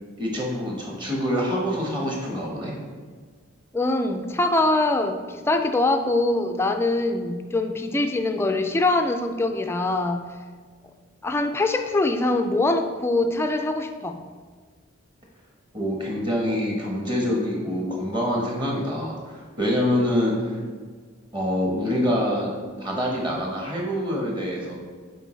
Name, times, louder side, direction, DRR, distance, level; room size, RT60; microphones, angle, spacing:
voice 1, 0.2-2.7 15.7-20.6 21.3-22.5 22.8-24.7, equal, 25° right, -2 dB, 1.1 m, -25 dB
voice 2, 3.7-10.3 11.2-14.2, left 2 dB, 15° left, 6 dB, 0.3 m, -23 dB
6.7 x 4.5 x 3.2 m, 1.5 s
head